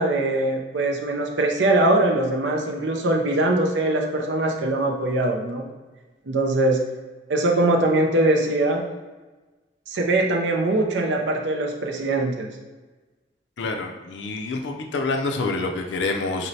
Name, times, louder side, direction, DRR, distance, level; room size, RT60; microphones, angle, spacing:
voice 1, 0.0-5.6 6.3-6.8 7.3-8.8 9.9-12.5, right 2 dB, 75° right, 1 dB, 0.5 m, -22 dB
voice 2, 13.6-16.5, left 3 dB, 75° left, 4 dB, 0.4 m, -27 dB
4.1 x 3.1 x 2.7 m, 1.2 s
head